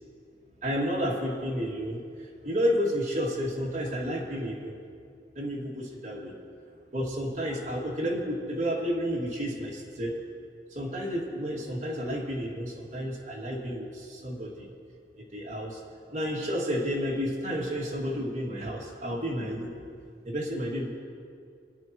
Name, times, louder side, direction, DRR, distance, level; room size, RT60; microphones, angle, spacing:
voice 1, 0.6-4.8 5.3-6.3 6.9-10.2 10.7-14.7 15.2-15.8 16.1-19.8 20.2-20.9, equal, 40° right, -4 dB, 2.3 m, -31 dB
26.0 x 10.0 x 3.1 m, 2.2 s
head